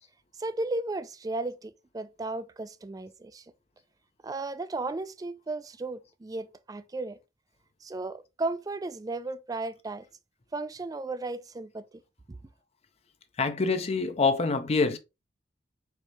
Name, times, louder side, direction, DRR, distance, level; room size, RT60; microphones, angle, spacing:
voice 1, 0.4-3.4 4.2-7.2 7.8-10.0 10.5-11.9 12.3-12.4, right 2 dB, 20° right, 0.3 m, -35 dB
voice 2, 13.4-15.0, left 4 dB, 35° left, 0.5 m, -25 dB
4.7 x 3.1 x 2.8 m
head